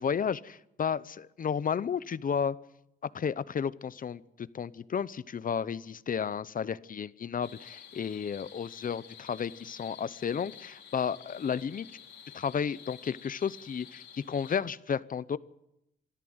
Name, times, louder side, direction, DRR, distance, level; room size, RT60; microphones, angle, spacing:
voice 1, 0.0-2.6 3.1-11.9 12.3-15.4, left 7 dB, 45° left, 18 dB, 0.8 m, -32 dB
sound 1, 7.4-14.6, left 8 dB, 80° left, 3.3 m, -50 dB
25.0 x 13.5 x 8.0 m, 0.85 s
cardioid pair, 95°, 19 cm